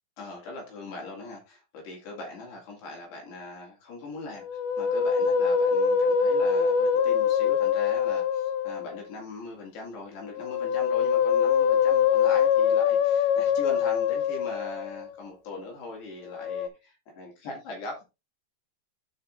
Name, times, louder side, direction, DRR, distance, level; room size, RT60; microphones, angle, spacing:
voice 1, 0.2-18.0, left 2 dB, 60° left, 4.1 m, -40 dB
Musical instrument, 4.4-9.0 10.3-15.1 16.3-16.7, left 7 dB, 85° left, 2.5 m, -24 dB
12.5 x 5.4 x 2.5 m
omnidirectional pair, 5.8 m